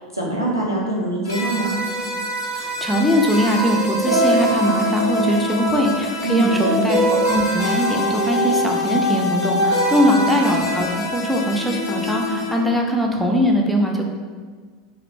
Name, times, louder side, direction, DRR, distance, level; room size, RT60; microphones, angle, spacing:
voice 1, 0.1-1.7 6.2-6.8 9.9-10.2, right 2 dB, 90° right, -4 dB, 0.5 m, -24 dB
sound 1, 1.3-12.5, equal, 65° left, 0.5 m, -23 dB
voice 2, 2.5-14.0, equal, ahead, 0 dB, 0.3 m, -21 dB
2.4 x 2.0 x 3.1 m, 1.5 s
figure-of-eight pair, 85°, 2 cm